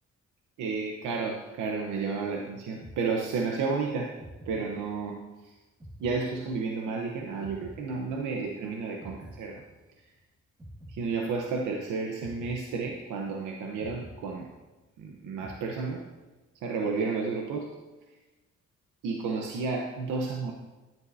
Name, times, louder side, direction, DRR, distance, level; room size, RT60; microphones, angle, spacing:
voice 1, 0.6-4.2 4.5-5.5 6.0-9.6 10.9-14.5 15.0-16.1 16.5-17.7 19.0-20.5, right 4 dB, 80° right, 1 dB, 1.0 m, -32 dB
sound 1, 2.8-3.7 4.2-5.3 5.8-7.0 7.4-8.6 9.0-10.2 10.6-11.7 12.2-13.4 13.8-15.0 15.4-16.3, equal, 15° right, 1.5 m, -49 dB
10.5 x 9.5 x 2.7 m, 1.2 s
cardioid pair, 90°, 30 cm